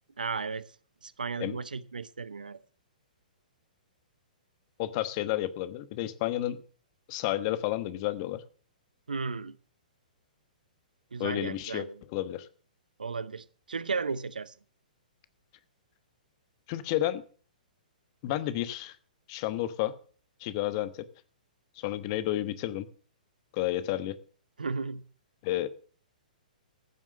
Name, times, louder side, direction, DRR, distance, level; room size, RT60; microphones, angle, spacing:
voice 1, 0.2-0.7 1.0-2.6 9.1-9.6 11.1-11.9 13.0-14.5 24.6-25.0, right 4 dB, 75° right, 0.8 m, -34 dB
voice 2, 4.8-6.6 7.1-8.4 11.2-11.9 12.1-12.5 16.7-17.2 18.2-19.0 19.3-19.9 20.4-21.1 21.8-22.9 23.5-24.2 25.4-25.7, left 14 dB, 40° left, 1.1 m, -31 dB
15.0 x 7.4 x 6.5 m
figure-of-eight pair, 115°, 5 cm